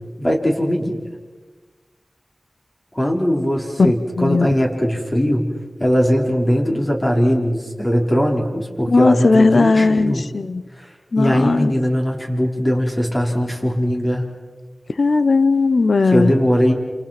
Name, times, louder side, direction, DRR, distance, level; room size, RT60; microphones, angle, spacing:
voice 1, 0.2-1.0 2.9-5.4 5.8-10.2 10.8-14.3 16.1-16.7, equal, 25° left, 0 dB, 4.8 m, -20 dB
voice 2, 4.1-4.5 8.9-10.6 11.1-11.7 15.0-16.3, left 3 dB, 75° left, 14 dB, 0.9 m, -16 dB
29.0 x 28.5 x 6.1 m, 1.3 s
wide cardioid pair, 60°, 0 cm